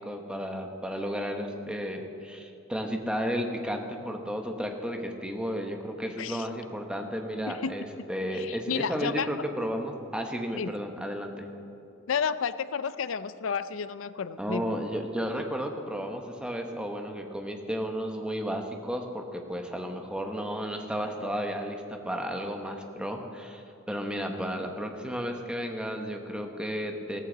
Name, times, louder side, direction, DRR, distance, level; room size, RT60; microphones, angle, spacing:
voice 1, 0.0-11.4 14.4-27.2, equal, 5° right, 3 dB, 1.1 m, -33 dB
voice 2, 8.3-9.3 10.5-10.7 12.1-14.7, left 6 dB, 80° left, 14 dB, 0.5 m, -31 dB
15.0 x 14.5 x 4.0 m, 2.9 s
head